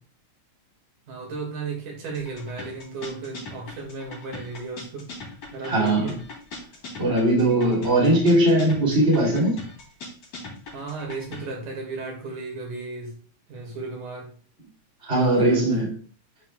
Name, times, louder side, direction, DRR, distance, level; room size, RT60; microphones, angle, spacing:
voice 1, 1.1-5.1 5.5-6.2 10.7-13.2 13.5-14.3 15.1-15.9, right 3 dB, 75° right, 3.6 m, -34 dB
sound 1, 2.1-11.5, left 3 dB, 60° left, 4.1 m, -40 dB
voice 2, 5.6-6.1 7.0-9.6 15.0-15.9, right 1 dB, 20° right, 2.5 m, -20 dB
12.5 x 4.8 x 2.4 m
omnidirectional pair, 3.6 m